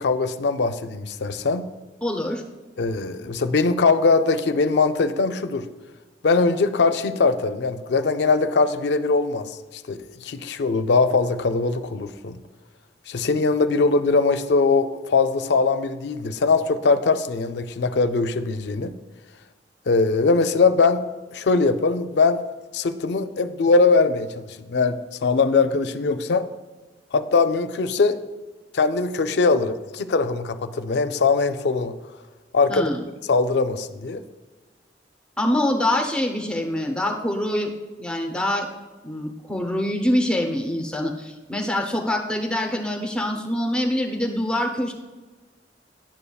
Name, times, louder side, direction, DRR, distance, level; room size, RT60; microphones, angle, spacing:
voice 1, 0.0-1.7 2.8-5.7 6.2-12.4 13.1-18.9 19.9-21.0 21.3-22.4 22.7-26.5 27.1-28.2 28.7-31.9 32.5-32.9 33.3-34.2, left 4 dB, 65° left, 10 dB, 0.4 m, -21 dB
voice 2, 2.0-2.4 32.7-33.0 35.4-37.7 38.0-38.7 39.0-44.9, left 1 dB, 5° left, 2 dB, 0.6 m, -25 dB
10.5 x 6.8 x 2.3 m, 1.3 s
head